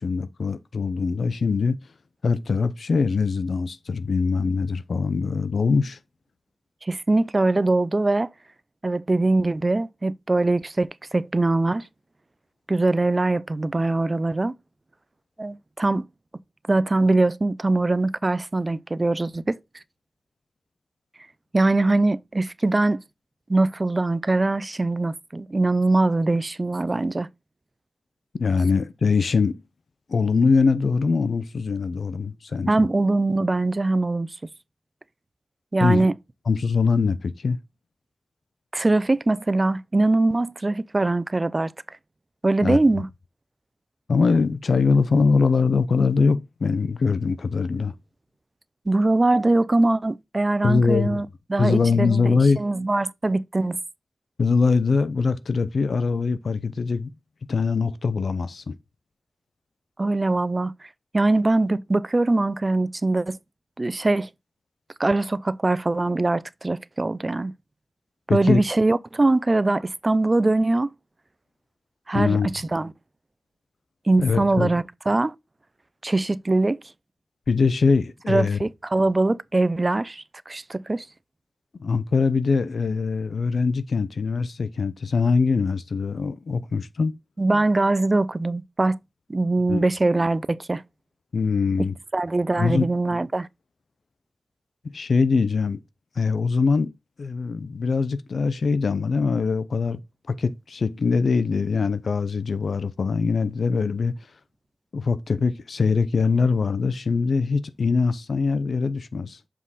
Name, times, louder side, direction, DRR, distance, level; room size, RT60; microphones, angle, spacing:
voice 1, 0.0-1.8 2.2-6.0 28.3-29.6 30.1-32.7 35.8-36.1 36.5-37.6 42.6-42.8 44.1-47.9 50.6-51.2 51.6-52.6 54.4-57.1 57.5-58.7 68.3-68.6 72.1-72.5 74.2-74.7 77.5-78.6 81.8-87.2 89.7-89.9 91.3-91.9 92.6-92.9 94.9-95.8 96.2-96.9 97.2-100.0 100.3-104.1 104.9-109.4, left 4 dB, 85° left, 0.5 m, -22 dB
voice 2, 6.8-8.3 8.8-11.9 12.7-14.5 15.4-16.0 16.7-19.6 21.5-23.0 23.5-27.3 32.7-34.3 35.7-36.1 38.7-42.0 42.4-43.1 48.9-53.8 60.0-60.9 61.1-63.4 63.8-64.3 65.0-67.5 68.3-70.9 72.1-72.9 74.1-75.3 76.0-76.8 78.3-81.1 87.4-89.0 89.3-90.8 92.1-93.5, right 2 dB, 35° right, 0.4 m, -22 dB
7.3 x 3.7 x 4.0 m
wide cardioid pair, 85°, 0 cm